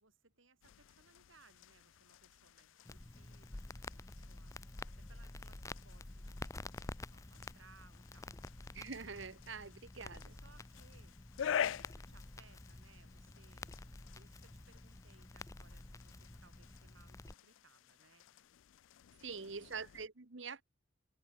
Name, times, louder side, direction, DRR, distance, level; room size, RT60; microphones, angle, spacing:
voice 1, 0.0-4.5 5.0-8.3 10.3-11.2 11.4-18.3 19.2-19.7, right 4 dB, 80° right, 7.3 m, -67 dB
sound 1, 0.6-20.1, left 8 dB, 75° left, 0.4 m, -47 dB
Crackle, 2.9-17.3, left 2 dB, 15° left, 0.6 m, -50 dB
voice 2, 8.7-10.3 19.2-20.6, right 5 dB, 65° right, 1.2 m, -45 dB
head